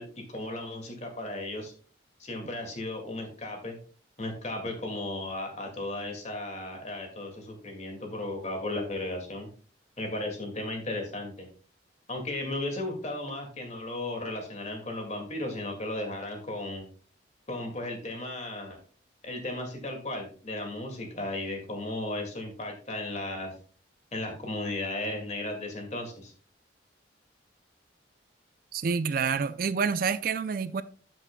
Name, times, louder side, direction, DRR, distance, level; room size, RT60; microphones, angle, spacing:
voice 1, 0.0-1.7 2.2-3.8 4.2-9.5 10.0-11.5 12.1-16.9 17.5-18.8 19.2-23.5 24.1-26.3, left 2 dB, 35° left, 2.1 m, -35 dB
voice 2, 28.7-30.8, right 5 dB, 50° right, 0.4 m, -28 dB
13.5 x 6.0 x 2.2 m
head